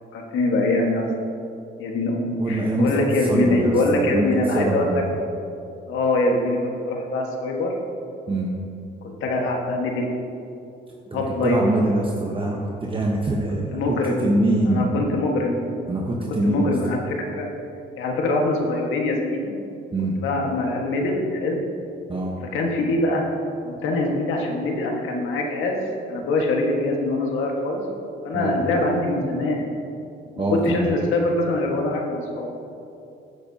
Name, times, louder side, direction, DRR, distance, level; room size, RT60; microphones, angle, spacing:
voice 1, 0.1-1.1 1.8-5.0 5.9-7.7 9.0-10.1 11.1-11.6 13.7-14.3 14.7-15.7 16.1-17.5 18.0-19.5 20.2-21.6 22.5-23.2 23.6-25.8 26.1-27.8 28.2-29.7 30.5-32.5, left 2 dB, 85° left, 1 dB, 1.6 m, -23 dB
voice 2, 2.4-3.0 3.3-4.3 4.5-5.0 8.3-8.5 11.1-14.0 14.2-14.9 15.9-16.7 19.9-20.2 22.1-22.3 28.3-28.5 30.4-30.9, right 1 dB, 25° right, -2 dB, 1.1 m, -24 dB
15.0 x 8.8 x 2.9 m, 2.7 s
cardioid pair, 90°, 20 cm